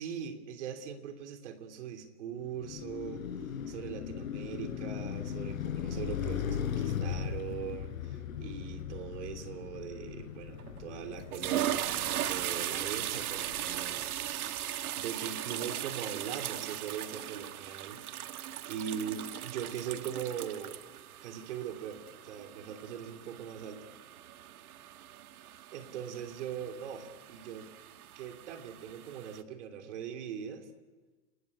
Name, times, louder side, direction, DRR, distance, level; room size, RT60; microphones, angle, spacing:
voice 1, 0.0-3.2 3.7-14.6 15.0-18.0 18.6-20.8 21.2-23.9 25.7-27.7 28.1-30.7, right 8 dB, 45° right, 6 dB, 3.1 m, -41 dB
Car passing by, 2.4-14.6, left 8 dB, 60° left, 4.7 m, -38 dB
sound 1, 10.6-10.8 11.2-29.4, right 12 dB, 65° right, 1.4 m, -38 dB
29.0 x 19.5 x 9.8 m, 1.3 s
supercardioid pair, 175°, 46 cm